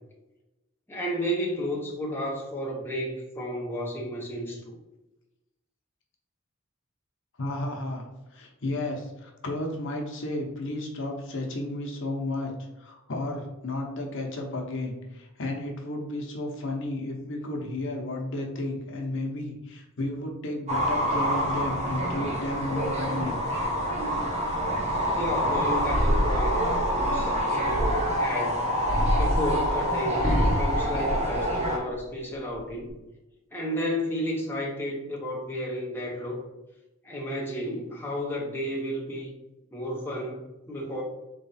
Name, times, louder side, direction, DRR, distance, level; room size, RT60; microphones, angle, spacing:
voice 1, 0.9-4.8 25.1-28.7 29.1-32.9 33.5-36.4 37.0-39.3 39.7-41.0, equal, 10° left, -3 dB, 0.8 m, -32 dB
voice 2, 7.4-8.1 8.3-12.5 12.8-23.4, left 1 dB, 60° left, 1 dB, 0.9 m, -33 dB
sound 1, 20.7-31.8, equal, 30° right, 1.0 m, -27 dB
sound 2, 25.8-28.2 28.8-31.9 32.3-32.9, equal, 40° left, 1.3 m, -27 dB
3.9 x 3.2 x 4.2 m, 1.0 s
head